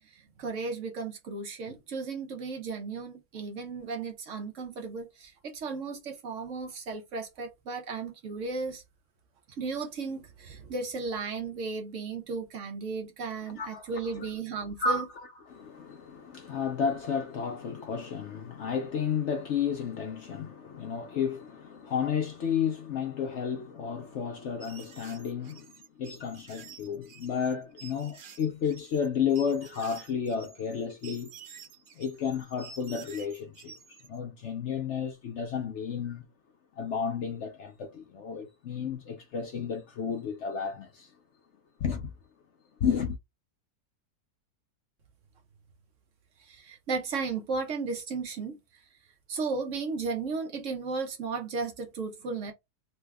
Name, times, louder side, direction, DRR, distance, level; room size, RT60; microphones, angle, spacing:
voice 1, 0.1-8.8 9.6-15.1 46.4-48.6 49.3-52.5, right 4 dB, 60° right, 1.0 m, -35 dB
voice 2, 13.6-14.3 14.8-31.3 32.0-36.3 36.8-41.1 41.8-42.1 42.8-43.2, left 6 dB, 65° left, 0.8 m, -32 dB
sound 1, 24.6-34.2, right 5 dB, 90° right, 0.4 m, -50 dB
3.3 x 2.2 x 3.4 m
omnidirectional pair, 1.6 m